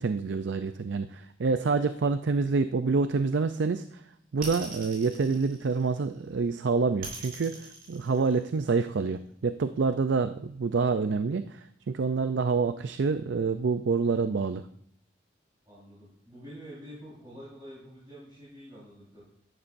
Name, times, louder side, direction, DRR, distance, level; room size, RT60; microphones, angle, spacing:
voice 1, 0.0-4.0 4.3-14.7, right 4 dB, 70° right, 10 dB, 0.5 m, -27 dB
sound 1, 4.4-6.2 7.0-8.8, right 4 dB, 50° right, 4.9 m, -42 dB
voice 2, 15.6-19.2, equal, 25° right, -9 dB, 4.4 m, -47 dB
13.5 x 11.0 x 2.6 m, 0.71 s
head